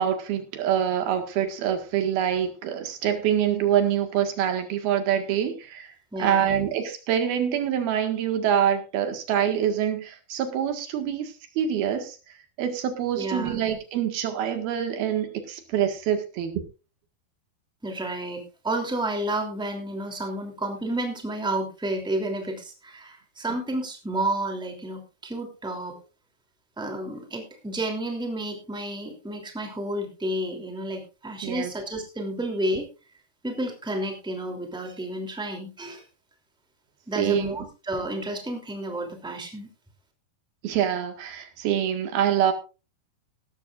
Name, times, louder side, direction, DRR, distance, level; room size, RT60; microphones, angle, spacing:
voice 1, 0.0-5.9 6.2-12.2 12.6-16.6 31.4-31.7 37.2-37.5 40.6-42.5, right 9 dB, 85° right, 6 dB, 3.7 m, -25 dB
voice 2, 6.1-6.5 13.2-13.6 17.8-26.0 26.8-32.8 33.4-36.0 37.1-39.7, right 1 dB, ahead, 3 dB, 2.4 m, -31 dB
18.0 x 13.0 x 2.5 m, 0.31 s
omnidirectional pair, 4.2 m